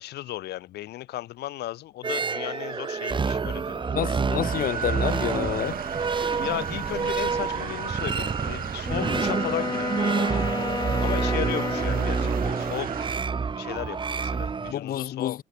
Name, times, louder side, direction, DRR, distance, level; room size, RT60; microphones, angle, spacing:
voice 1, 0.0-3.9 6.4-10.4 11.0-12.9 13.5-15.4, left 15 dB, 75° left, 7.6 m, -35 dB
sound 1, 2.0-14.7, right 5 dB, 30° right, 2.8 m, -28 dB
voice 2, 3.9-5.8 14.7-15.4, left 11 dB, 55° left, 2.3 m, -29 dB
sound 2, 4.4-13.2, right 11 dB, 60° right, 4.7 m, -38 dB
Wind instrument woodwind instrument, 8.8-13.0, left 4 dB, 25° left, 5.7 m, -32 dB
cardioid pair, 110°, 17 cm